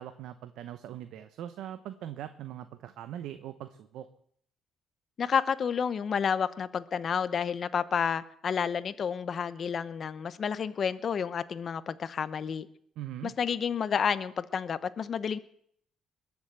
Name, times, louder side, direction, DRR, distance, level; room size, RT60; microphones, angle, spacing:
voice 1, 0.0-4.1 13.0-13.3, right 11 dB, 75° right, 0.8 m, -41 dB
voice 2, 5.2-12.7 13.2-15.4, left 7 dB, 45° left, 0.8 m, -30 dB
21.0 x 7.2 x 7.9 m
cardioid pair, 115°, 0 cm